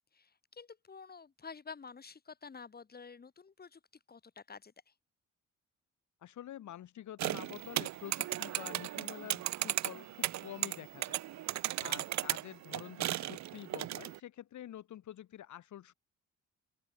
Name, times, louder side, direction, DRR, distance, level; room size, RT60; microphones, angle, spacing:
voice 1, 0.1-3.8 4.1-4.9, left 5 dB, 30° left, 2.0 m, -50 dB
voice 2, 6.2-11.1 11.8-15.9, left 11 dB, 70° left, 3.7 m, -48 dB
sound 1, 7.2-14.2, right 13 dB, 65° right, 0.8 m, -36 dB
open air
cardioid pair, 90°, 30 cm